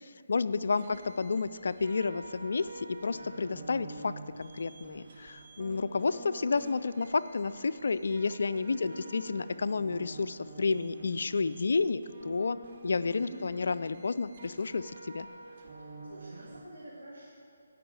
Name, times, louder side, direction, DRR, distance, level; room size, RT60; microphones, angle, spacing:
voice 1, 0.0-12.6 12.8-15.3, left 4 dB, 65° left, 14 dB, 0.3 m, -31 dB
sound 1, 0.7-16.6, right 2 dB, 45° right, 1.2 m, -48 dB
voice 2, 8.7-9.1 13.3-13.8 15.8-17.3, right 1 dB, 80° right, -5 dB, 1.9 m, -47 dB
9.3 x 5.4 x 8.0 m, 2.3 s
figure-of-eight pair, 155°, 0 cm